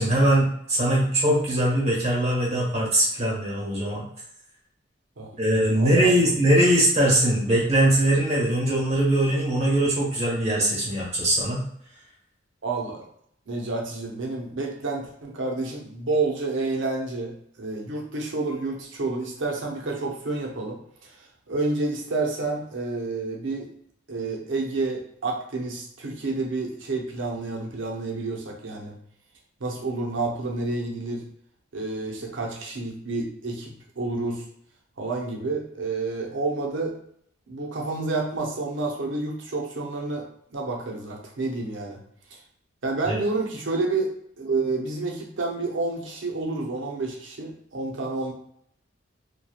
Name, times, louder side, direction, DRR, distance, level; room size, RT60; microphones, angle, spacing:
voice 1, 0.0-4.0 5.4-11.6 43.1-43.2, right 1 dB, 35° right, -4 dB, 1.1 m, -21 dB
voice 2, 5.7-6.1 12.6-13.1 13.5-21.1 21.5-23.7 24.1-28.9 29.6-31.2 31.7-34.4 35.0-37.0 37.5-42.0 42.8-44.1 44.4-48.3, right 3 dB, 75° right, 0 dB, 0.7 m, -29 dB
2.8 x 2.3 x 2.3 m, 0.68 s
head